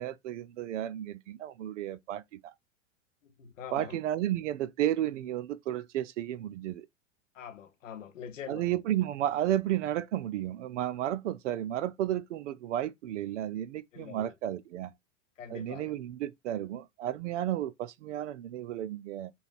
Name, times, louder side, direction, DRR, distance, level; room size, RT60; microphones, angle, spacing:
voice 1, 0.0-2.5 3.7-6.9 8.5-14.9 15.5-19.3, right 12 dB, 70° right, 0.6 m, -33 dB
voice 2, 3.2-4.0 7.3-8.7 13.9-14.3 15.4-15.9, left 8 dB, 85° left, 0.8 m, -44 dB
5.5 x 2.3 x 2.5 m
hypercardioid pair, 100°, 38 cm